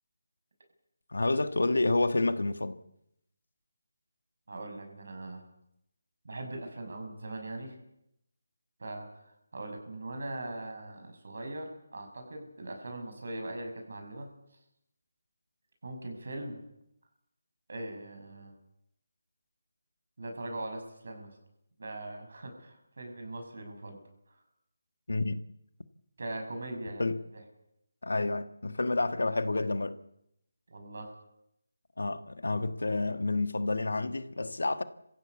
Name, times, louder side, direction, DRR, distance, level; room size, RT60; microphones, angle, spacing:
voice 1, 1.1-2.7 25.1-25.4 27.0-27.2 28.0-30.0 32.0-34.8, left 2 dB, 80° left, 1.5 m, -29 dB
voice 2, 4.5-5.4 6.2-7.7 8.8-9.1 9.5-14.3 15.8-16.6 17.7-18.5 20.2-21.3 21.8-24.0 24.3-24.4 26.2-27.1 27.3-27.4 30.7-31.2, right 2 dB, 65° right, 6.7 m, -40 dB
24.0 x 15.5 x 8.4 m
figure-of-eight pair, 160°, 0 cm